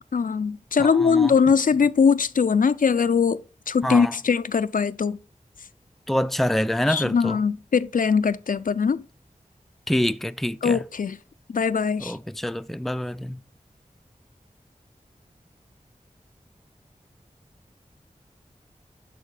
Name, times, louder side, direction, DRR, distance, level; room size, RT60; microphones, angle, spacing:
voice 1, 0.1-3.4 3.7-5.2 6.9-9.0 10.6-11.2 11.5-12.2, left 6 dB, 75° left, 0.4 m, -21 dB
voice 2, 0.8-1.3 3.8-4.1 6.1-7.4 9.9-10.8 12.0-13.4, left 1 dB, ahead, 0.4 m, -26 dB
11.0 x 4.4 x 4.8 m
wide cardioid pair, 40°, 14 cm